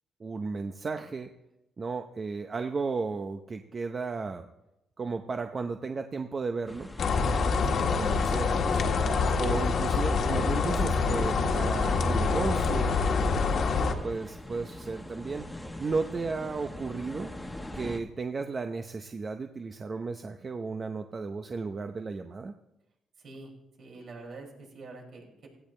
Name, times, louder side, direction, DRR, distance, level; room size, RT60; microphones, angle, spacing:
voice 1, 0.2-1.3 1.8-4.5 5.0-6.9 8.0-9.0 9.4-13.0 13.3-13.6 14.0-15.4 15.8-17.3 17.7-22.5, right 4 dB, 35° right, 6 dB, 0.8 m, -34 dB
sound 1, 6.7-18.0, left 1 dB, 10° left, 1.4 m, -43 dB
sound 2, 7.0-13.9, left 4 dB, 60° left, 1.7 m, -26 dB
voice 2, 23.2-23.5 23.8-25.5, right 3 dB, 60° right, -1 dB, 6.1 m, -46 dB
17.0 x 16.0 x 3.3 m, 0.93 s
cardioid pair, 90°, 0 cm